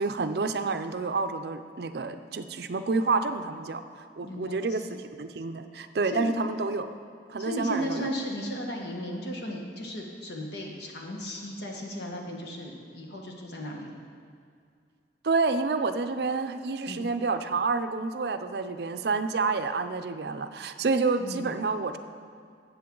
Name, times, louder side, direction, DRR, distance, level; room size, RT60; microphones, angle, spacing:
voice 1, 0.0-3.8 4.2-6.9 7.3-8.1 15.2-22.0, right 4 dB, 65° right, 10 dB, 0.5 m, -29 dB
voice 2, 4.2-4.9 6.1-6.3 7.4-13.9 16.9-17.0 21.2-21.6, equal, 70° left, 0 dB, 1.5 m, -35 dB
13.5 x 7.9 x 3.8 m, 2.3 s
head